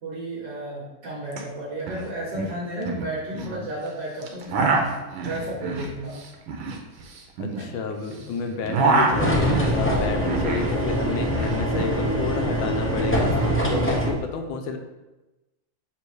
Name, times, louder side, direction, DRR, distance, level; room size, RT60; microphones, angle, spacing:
voice 1, 0.0-4.7 5.2-6.2 7.6-7.8 9.8-10.2 13.7-14.1, right 1 dB, 60° right, -5 dB, 2.1 m, -33 dB
sound 1, 1.3-1.4 1.7-2.0 2.3-3.5 4.2-8.2 8.5-10.7 11.0-12.0, right 3 dB, 85° right, 1.7 m, -26 dB
voice 2, 7.4-14.8, left 5 dB, 75° left, 5 dB, 1.5 m, -31 dB
sound 2, 9.1-14.1, equal, 15° left, 0.4 m, -23 dB
7.8 x 3.1 x 4.7 m, 1.1 s
omnidirectional pair, 2.2 m